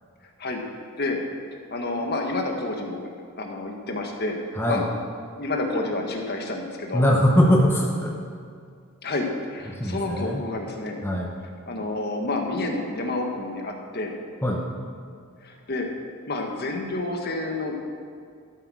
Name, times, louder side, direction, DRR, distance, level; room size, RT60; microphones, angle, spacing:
voice 1, 1.7-3.1 3.4-4.4 4.7-4.8 5.4-7.1 9.0-11.0 11.7-14.1 15.4-15.9 16.3-17.7, left 2 dB, 45° left, 2 dB, 1.4 m, -29 dB
voice 2, 6.9-8.2 9.8-10.4 11.0-11.3 14.4-14.6, equal, 10° left, -1 dB, 0.9 m, -21 dB
13.0 x 8.3 x 6.3 m, 2.2 s
head